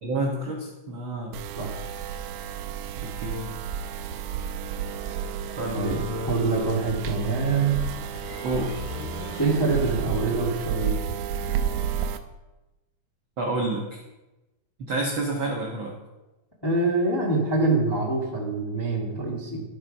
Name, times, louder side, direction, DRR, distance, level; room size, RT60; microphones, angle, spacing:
voice 1, 0.0-1.4 3.0-3.5 5.6-6.3 8.4-8.8 13.4-14.0 14.8-16.0, right 2 dB, 60° right, -1 dB, 1.3 m, -29 dB
sound 1, 1.3-12.2, right 8 dB, 90° right, 2.3 m, -31 dB
sound 2, 5.3-10.0, left 5 dB, 90° left, 3.0 m, -44 dB
voice 2, 6.3-7.7 9.4-11.0 16.6-19.6, right 3 dB, 15° left, -2 dB, 0.9 m, -25 dB
12.0 x 8.0 x 5.3 m, 1.1 s
omnidirectional pair, 3.9 m